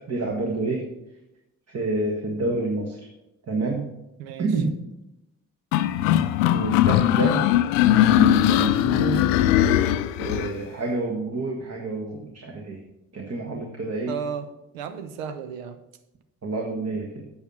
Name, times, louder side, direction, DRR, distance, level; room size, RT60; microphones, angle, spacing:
voice 1, 0.1-0.9 1.7-3.0 3.5-3.9 4.4-4.8 6.5-7.4 7.9-9.4 10.2-12.8 13.1-14.1 16.4-17.3, right 2 dB, 40° right, 1 dB, 1.6 m, -28 dB
sound 1, 5.7-10.5, left 12 dB, 75° left, 0.5 m, -20 dB
voice 2, 14.1-15.8 16.9-17.0, right 7 dB, 80° right, 10 dB, 0.8 m, -34 dB
8.7 x 5.8 x 5.9 m, 0.91 s
figure-of-eight pair, 40°, 40 cm